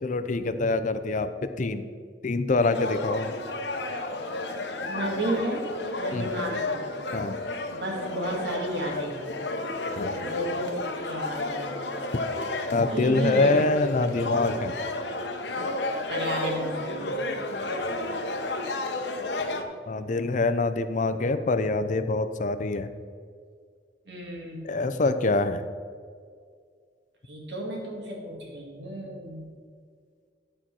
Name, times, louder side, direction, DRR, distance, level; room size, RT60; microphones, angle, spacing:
voice 1, 0.0-1.9 2.2-3.3 6.1-6.3 7.1-7.4 10.0-10.2 12.7-14.7 19.9-22.9 24.6-25.7, left 3 dB, 45° left, 11 dB, 0.5 m, -25 dB
sound 1, 2.6-19.6, left 2 dB, 75° left, 0.9 m, -32 dB
voice 2, 4.9-5.7 6.0-6.8 7.7-9.3 10.1-11.7 12.9-13.7 16.1-17.2 24.1-24.7 27.2-29.4, right 1 dB, 75° right, -1 dB, 2.1 m, -33 dB
11.5 x 4.3 x 6.2 m, 2.1 s
head